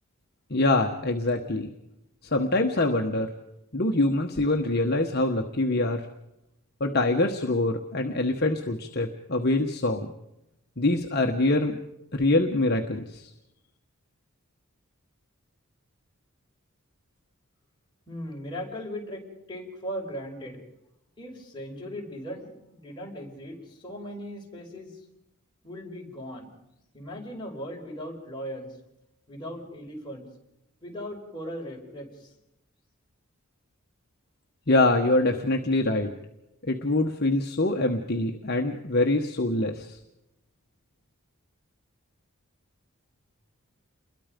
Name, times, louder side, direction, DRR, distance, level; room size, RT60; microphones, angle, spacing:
voice 1, 0.5-1.7 2.2-3.3 3.7-6.0 6.8-10.1 10.8-11.8 12.1-13.3 34.7-36.1 36.6-40.0, left 2 dB, 45° left, 3 dB, 1.3 m, -24 dB
voice 2, 18.1-20.6 21.2-25.0 25.6-26.5 26.9-28.8 29.3-30.3 30.8-32.3, equal, 20° left, -2 dB, 5.1 m, -38 dB
29.0 x 22.0 x 5.2 m, 0.87 s
head